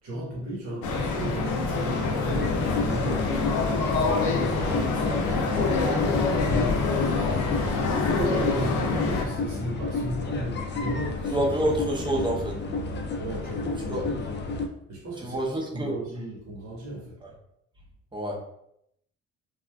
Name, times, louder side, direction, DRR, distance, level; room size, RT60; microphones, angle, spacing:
voice 1, 0.0-3.4 3.9-11.8 13.2-14.2 14.9-17.2, right 1 dB, 65° right, -6 dB, 1.3 m, -35 dB
Mall ambiance, 0.8-9.3, left 4 dB, 80° left, 0.7 m, -26 dB
sound 1, 2.4-14.7, left 3 dB, 35° left, 0.4 m, -31 dB
voice 2, 3.9-4.2 4.6-4.8 5.1-5.5 11.3-12.6 13.9-14.0 15.2-16.0 17.2-17.3 18.1-18.4, right 1 dB, 15° right, -1 dB, 0.7 m, -28 dB
3.3 x 2.5 x 2.3 m, 0.75 s
cardioid pair, 90°, 30 cm